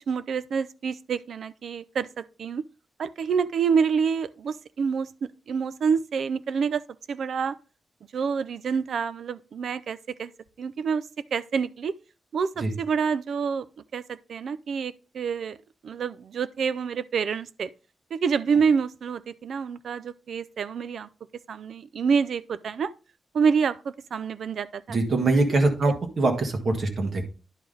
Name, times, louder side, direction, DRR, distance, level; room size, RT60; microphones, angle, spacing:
voice 1, 0.1-2.6 3.0-5.1 5.5-6.8 7.1-7.5 8.1-10.3 10.6-12.0 12.3-13.7 13.9-15.6 15.8-17.7 18.1-21.1 21.5-22.9 23.3-25.0, right 6 dB, 60° right, 0.4 m, -27 dB
voice 2, 24.9-27.2, right 2 dB, 45° right, 1.5 m, -23 dB
10.5 x 4.9 x 3.9 m
wide cardioid pair, 180°, 0 cm